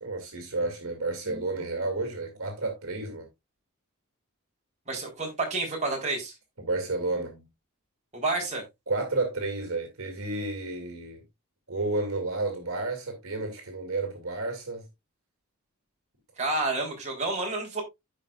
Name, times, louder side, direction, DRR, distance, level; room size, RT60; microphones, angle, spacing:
voice 1, 0.0-3.3 6.6-7.5 8.9-11.2 11.7-14.9, right 2 dB, 70° right, 2.4 m, -31 dB
voice 2, 4.9-6.3 8.1-8.6 16.4-17.8, right 2 dB, 30° right, 3.6 m, -29 dB
14.5 x 5.2 x 2.4 m
head